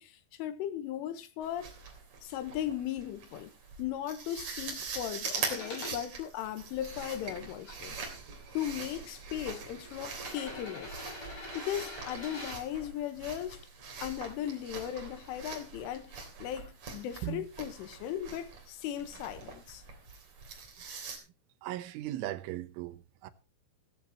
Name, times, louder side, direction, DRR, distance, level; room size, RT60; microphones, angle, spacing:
voice 1, 0.0-1.7 2.2-3.5 3.8-8.0 8.6-10.9 11.6-13.6 14.0-19.8, left 11 dB, 85° left, 3.7 m, -37 dB
sound 1, 1.4-21.2, right 4 dB, 40° right, 4.0 m, -43 dB
sound 2, 5.4-6.0 6.7-7.7 8.7-8.8 10.1-12.6 14.5-14.6, left 1 dB, 30° left, 7.7 m, -44 dB
voice 2, 21.6-23.3, right 13 dB, 80° right, 3.4 m, -37 dB
16.5 x 14.0 x 3.0 m
omnidirectional pair, 5.6 m